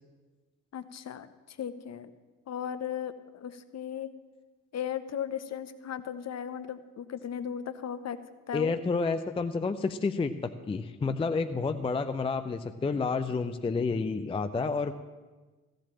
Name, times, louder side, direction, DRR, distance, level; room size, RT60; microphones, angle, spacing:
voice 1, 0.7-2.1 2.5-4.1 4.7-8.2 8.5-8.7, left 8 dB, 35° left, 13 dB, 0.9 m, -36 dB
voice 2, 8.5-14.9, left 4 dB, 15° left, 9 dB, 0.5 m, -30 dB
14.5 x 7.8 x 7.5 m, 1.3 s
figure-of-eight pair, 45°, 43 cm